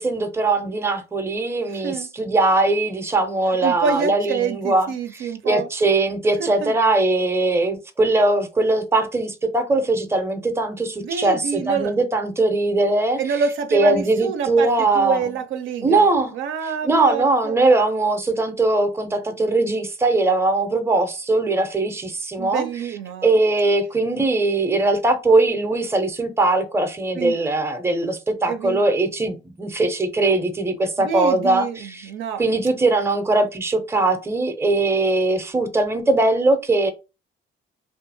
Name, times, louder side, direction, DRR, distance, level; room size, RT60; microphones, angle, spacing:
voice 1, 0.0-13.2 13.7-15.2 15.8-16.3 16.8-22.6 23.2-32.1 32.4-36.9, right 2 dB, 10° right, 0.5 m, -20 dB
voice 2, 3.6-5.7 6.4-6.8 11.0-11.9 13.2-16.1 16.3-17.6 22.4-23.3 27.1-27.4 28.5-28.8 31.0-32.4, right 6 dB, 80° right, 0.5 m, -27 dB
2.7 x 2.4 x 2.6 m
cardioid pair, 90°, 20 cm